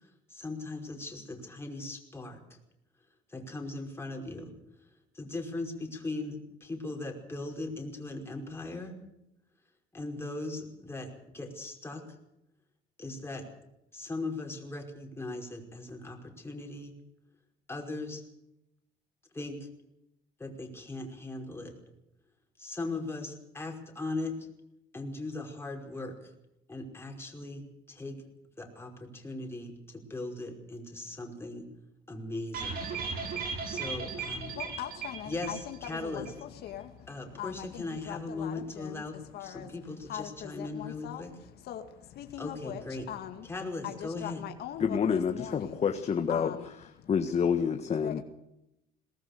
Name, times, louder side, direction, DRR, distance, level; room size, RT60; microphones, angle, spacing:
voice 1, 0.0-2.6 3.3-4.5 5.1-8.9 9.9-12.0 13.0-13.4 13.9-16.9 17.7-18.2 19.3-19.7 20.4-21.7 22.6-24.5 24.9-26.2 26.7-28.2 28.6-31.7 32.1-32.9 33.6-34.5 35.3-35.6 35.9-36.3 37.1-41.3 42.4-43.1 43.5-44.4, left 2 dB, 15° left, 2 dB, 5.3 m, -39 dB
sound 1, 32.5-36.0 36.3-36.4 36.7-36.8, right 5 dB, 60° right, 7.1 m, -36 dB
voice 2, 34.2-43.5 43.8-45.8 46.3-46.7 47.0-47.1 47.9-48.2, left 11 dB, 70° left, 6 dB, 2.2 m, -42 dB
voice 3, 44.8-46.5 47.1-48.2, left 7 dB, 40° left, 7 dB, 1.6 m, -28 dB
22.0 x 19.5 x 6.7 m, 0.84 s
cardioid pair, 110°, 17 cm